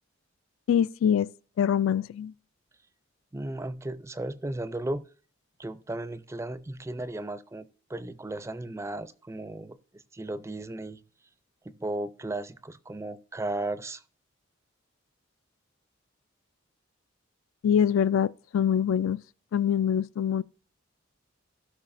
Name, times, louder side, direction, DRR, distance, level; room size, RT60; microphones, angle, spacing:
voice 1, 0.7-1.3 1.6-2.3 17.6-19.2 19.5-20.4, left 8 dB, 80° left, 0.3 m, -24 dB
voice 2, 3.3-5.1 5.6-11.0 11.6-14.0, right 2 dB, 15° right, 0.4 m, -35 dB
16.0 x 6.2 x 2.5 m
head